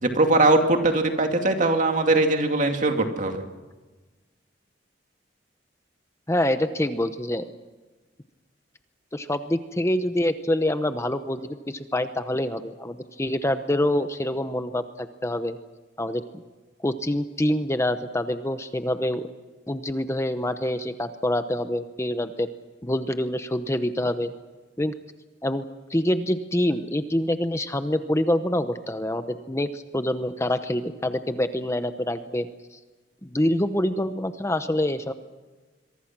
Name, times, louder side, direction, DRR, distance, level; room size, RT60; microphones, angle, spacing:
voice 1, 0.0-3.4, right 2 dB, 45° right, 4 dB, 2.4 m, -21 dB
voice 2, 6.3-7.4 9.1-15.6 16.0-16.4 16.8-19.3 19.7-22.5 22.8-24.3 24.8-24.9 25.4-25.6 25.9-32.8 33.2-35.1, left 1 dB, 15° left, 9 dB, 0.9 m, -26 dB
26.5 x 23.5 x 6.1 m, 1.3 s
head